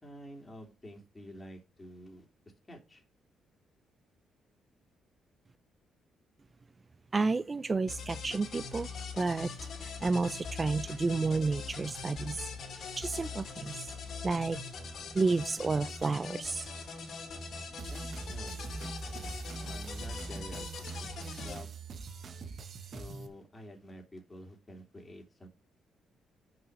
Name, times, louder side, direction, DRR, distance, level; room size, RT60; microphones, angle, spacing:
voice 1, 0.0-2.3 2.7-3.0 17.8-19.3 19.6-21.7 22.9-25.5, equal, 20° left, 2.8 m, -49 dB
voice 2, 7.1-8.9 9.1-9.5 9.8-12.5 13.0-13.9 14.2-14.6 15.1-16.7, right 3 dB, 30° right, 0.4 m, -31 dB
sound 1, 7.9-21.6, left 4 dB, 60° left, 2.6 m, -42 dB
sound 2, 17.8-23.3, right 4 dB, 55° right, 1.1 m, -42 dB
6.2 x 5.6 x 6.5 m
cardioid pair, 90°, 0 cm